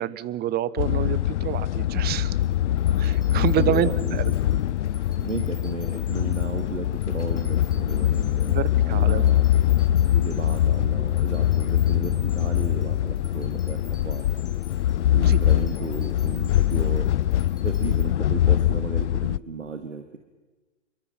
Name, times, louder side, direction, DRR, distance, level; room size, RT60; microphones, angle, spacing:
voice 1, 0.0-2.3 3.0-4.3 8.5-9.2 15.2-15.4, right 12 dB, 25° right, 19 dB, 1.0 m, -28 dB
sound 1, 0.8-19.4, left 12 dB, 70° left, 0.6 m, -23 dB
sound 2, 2.4-18.0, left 3 dB, 10° left, 4.4 m, -52 dB
voice 2, 3.5-4.6 5.2-9.5 10.1-14.2 15.1-17.1 17.6-20.2, right 5 dB, 85° right, 7 dB, 1.9 m, -35 dB
28.0 x 23.5 x 5.9 m, 1.2 s
figure-of-eight pair, 100°, 37 cm